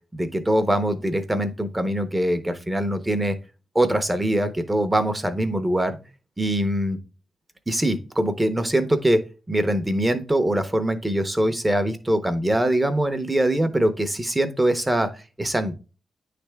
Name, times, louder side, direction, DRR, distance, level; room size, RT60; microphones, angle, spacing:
voice 1, 0.1-3.4 3.7-6.0 6.4-7.0 7.7-9.2 9.5-15.1 15.4-15.7, right 1 dB, 10° right, 9 dB, 0.7 m, -23 dB
9.6 x 3.4 x 3.3 m, 0.33 s
wide cardioid pair, 130°, 0 cm